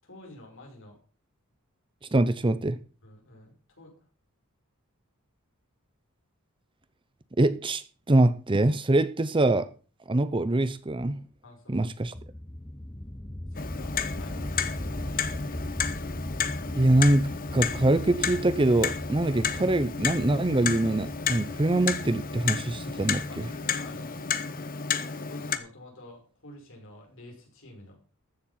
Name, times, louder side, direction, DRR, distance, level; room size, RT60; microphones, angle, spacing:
voice 1, 0.0-1.0 3.0-4.1 11.4-11.9 13.5-15.3 23.3-24.6 24.9-28.0, left 1 dB, 60° left, 5.4 m, -49 dB
voice 2, 2.1-2.8 7.4-9.7 10.1-11.2 11.7-12.1 16.7-23.2, right 2 dB, 20° right, 0.7 m, -24 dB
sound 1, 12.1-24.5, left 1 dB, 10° left, 0.9 m, -39 dB
Clock, 13.5-25.6, left 6 dB, 40° left, 1.0 m, -32 dB
14.5 x 7.2 x 5.7 m
head